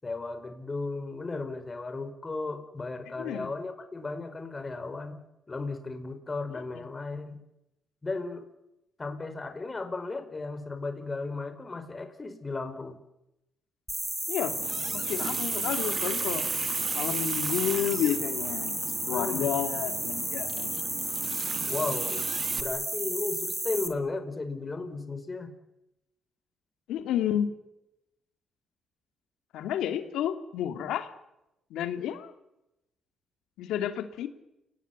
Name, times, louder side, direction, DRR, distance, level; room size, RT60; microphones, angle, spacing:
voice 1, 0.0-5.2 5.5-7.4 8.0-8.4 9.0-13.0 19.1-19.5 21.7-22.3 22.5-25.5, left 3 dB, 25° left, 8 dB, 5.1 m, -35 dB
voice 2, 3.2-3.5 14.3-14.6 14.9-16.5 16.9-20.8 26.9-27.5 29.5-31.1 31.7-32.3 33.6-34.3, left 10 dB, 85° left, 8 dB, 2.8 m, -31 dB
sound 1, 13.9-23.9, right 1 dB, 5° right, 4.1 m, -33 dB
Water tap faucet, 14.4-22.6, right 6 dB, 45° right, 1.9 m, -35 dB
29.5 x 19.0 x 9.7 m, 0.91 s
cardioid pair, 90°, 0 cm